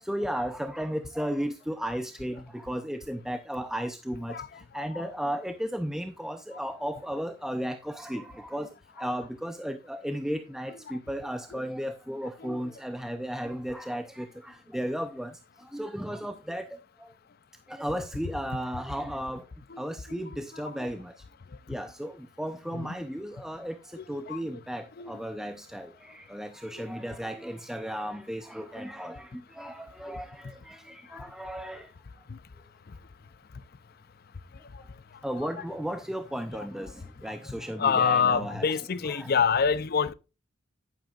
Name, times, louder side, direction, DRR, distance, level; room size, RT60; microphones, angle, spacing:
voice 1, 0.0-4.4 4.7-8.7 9.0-15.3 15.6-16.7 17.0-17.1 17.7-19.4 19.8-21.1 21.7-31.9 35.2-38.8 39.1-39.3, equal, 5° right, 0.5 m, -35 dB
voice 2, 4.3-5.0 10.9-11.0 11.5-11.6 12.4-12.6 19.7-19.8 20.1-20.9 22.7-22.9 23.9-24.6 25.0-25.1 26.7-26.8 31.1-31.3 32.3-32.4 34.7-34.8 36.5-36.7 37.4-40.1, left 6 dB, 50° left, 0.5 m, -28 dB
10.5 x 9.2 x 2.4 m
head